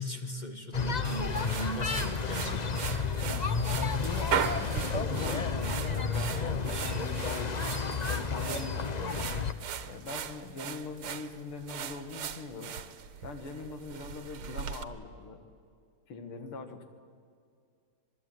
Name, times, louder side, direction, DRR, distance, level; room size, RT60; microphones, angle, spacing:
voice 1, 0.0-3.1, left 1 dB, 25° left, 5 dB, 1.5 m, -37 dB
sound 1, 0.7-9.5, left 5 dB, 50° left, 0.4 m, -31 dB
sound 2, 1.0-14.8, right 8 dB, 80° right, 2.0 m, -38 dB
voice 2, 2.4-7.7 8.1-9.3 9.8-12.8 13.2-15.4 16.1-16.8, left 4 dB, 85° left, 6 dB, 3.0 m, -42 dB
26.5 x 20.5 x 9.4 m, 2.2 s
omnidirectional pair, 2.3 m